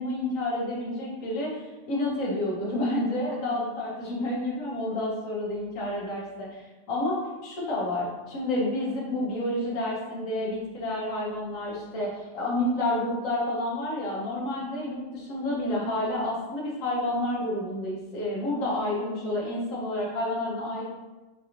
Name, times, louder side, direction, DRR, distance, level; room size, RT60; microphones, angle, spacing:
voice 1, 0.0-20.8, left 1 dB, 70° left, -4 dB, 1.4 m, -29 dB
4.6 x 2.9 x 2.5 m, 1.1 s
omnidirectional pair, 1.4 m